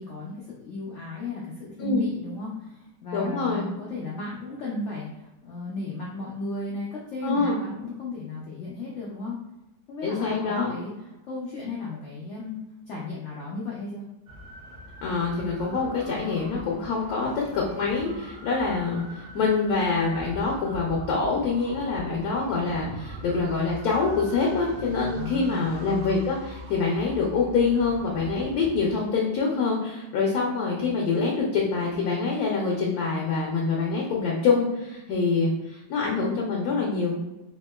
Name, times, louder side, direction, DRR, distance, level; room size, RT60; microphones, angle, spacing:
voice 1, 0.0-9.4 9.9-10.9 11.2-12.6 12.9-14.0 25.1-25.7, left 3 dB, 85° left, -5 dB, 0.6 m, -34 dB
voice 2, 1.8-2.1 3.1-3.7 7.2-7.6 10.0-10.7 15.0-37.1, left 4 dB, 70° left, -3 dB, 1.0 m, -25 dB
sound 1, 14.3-28.9, equal, 70° right, 0.7 m, -42 dB
3.5 x 2.8 x 2.2 m, 0.99 s
omnidirectional pair, 2.0 m